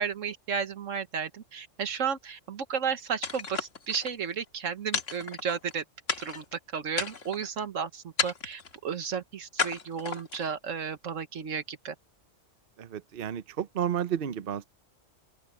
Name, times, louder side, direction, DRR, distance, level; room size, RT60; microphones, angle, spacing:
voice 1, 0.0-5.8 6.2-11.9, right 6 dB, 75° right, 1.5 m, -33 dB
sound 1, 3.2-4.1 4.9-5.7 6.1-6.5 6.9-7.5 8.2-8.7 9.6-10.5, left 5 dB, 70° left, 2.0 m, -32 dB
voice 2, 12.8-14.6, right 9 dB, 50° right, 0.9 m, -31 dB
open air
omnidirectional pair, 1.4 m